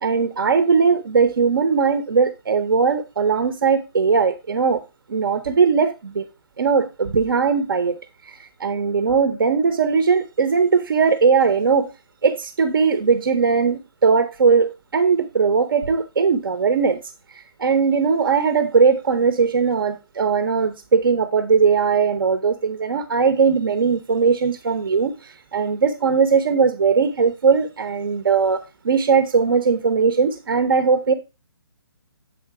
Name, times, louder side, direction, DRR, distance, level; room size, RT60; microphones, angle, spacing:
voice 1, 0.0-4.8 5.1-6.2 6.6-11.9 12.2-17.0 17.3-31.1, right 5 dB, 60° right, 1.0 m, -19 dB
7.8 x 4.2 x 4.8 m
figure-of-eight pair, 150°, 13 cm